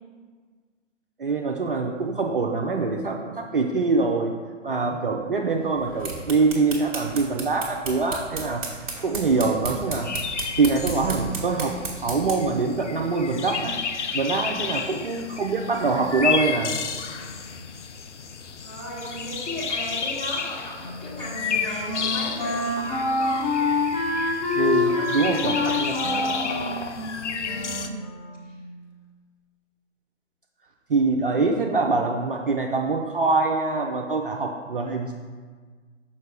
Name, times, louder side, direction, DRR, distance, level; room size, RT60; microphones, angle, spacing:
voice 1, 1.2-4.3 4.6-8.6 9.0-10.1 10.6-11.7 12.0-13.7 14.1-16.8 24.5-26.3 30.9-35.1, right 3 dB, 45° right, 1 dB, 0.5 m, -24 dB
sound 1, 5.8-12.5, right 3 dB, 30° right, 1.2 m, -34 dB
sound 2, 9.1-9.2 9.4-9.5 9.6-27.9, left 6 dB, 65° left, 0.6 m, -32 dB
voice 2, 18.6-24.0 24.6-26.8 27.1-27.9 28.5-28.6, equal, 10° left, -8 dB, 1.2 m, -36 dB
Wind instrument woodwind instrument, 20.8-28.6, left 3 dB, 35° left, 0.9 m, -27 dB
6.5 x 5.1 x 3.3 m, 1.5 s
figure-of-eight pair, 140°, 38 cm